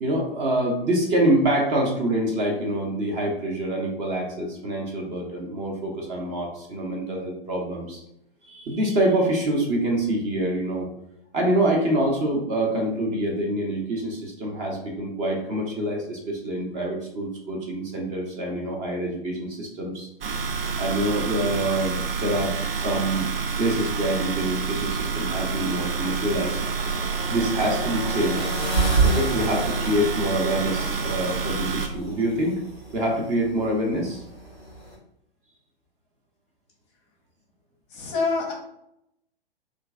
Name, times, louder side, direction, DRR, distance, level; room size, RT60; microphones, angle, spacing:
voice 1, 0.0-8.0 8.5-10.9 11.3-20.1 20.8-23.3 23.6-26.6 26.9-28.5 29.0-32.6 32.9-34.2, right 1 dB, 25° right, 0 dB, 0.7 m, -26 dB
sound 1, 20.2-31.9, right 5 dB, 70° right, 0.5 m, -28 dB
sound 2, 25.0-35.0, right 3 dB, 85° right, 1.4 m, -30 dB
voice 2, 37.9-38.5, left 4 dB, 20° left, 0 dB, 0.7 m, -26 dB
3.0 x 2.4 x 3.4 m, 0.79 s
figure-of-eight pair, 105°, 30 cm